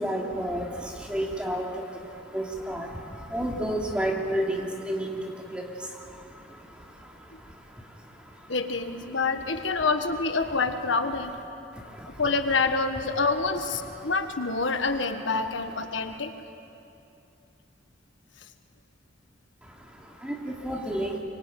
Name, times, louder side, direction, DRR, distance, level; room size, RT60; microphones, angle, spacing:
voice 1, 0.0-8.6 9.1-9.8 11.7-12.2 13.8-14.1 14.7-14.8 15.9-16.2 19.6-21.2, right 1 dB, 5° right, -1 dB, 2.9 m, -33 dB
voice 2, 8.5-11.3 12.2-16.3, left 4 dB, 80° left, 7 dB, 1.5 m, -27 dB
24.5 x 24.5 x 9.3 m, 2.7 s
head